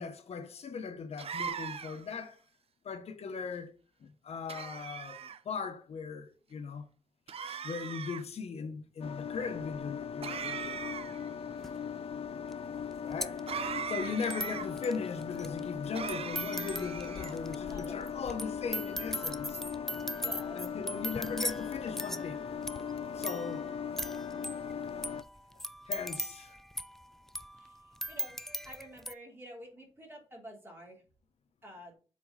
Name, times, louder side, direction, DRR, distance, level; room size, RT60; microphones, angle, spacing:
voice 1, 0.0-2.4 2.8-3.7 4.0-5.2 5.4-6.9 7.4-10.8 13.0-13.4 13.9-19.6 20.5-22.4 23.1-23.7 25.9-26.5, left 5 dB, 90° left, 1.1 m, -39 dB
sound 1, 1.2-2.1 4.5-5.4 7.3-8.2 10.2-11.3 13.5-14.7 15.9-17.4, right 7 dB, 70° right, 0.6 m, -39 dB
sound 2, 9.0-25.2, left 7 dB, 65° left, 0.4 m, -39 dB
sound 3, 11.6-11.7 12.5-12.6 12.8-29.1, equal, 5° left, 0.3 m, -40 dB
voice 2, 13.5-13.8 17.5-18.1 20.0-20.6 27.6-27.8 28.1-31.0 31.6-31.9, equal, 20° right, 3.5 m, -50 dB
7.3 x 4.6 x 4.1 m
wide cardioid pair, 125°, 10 cm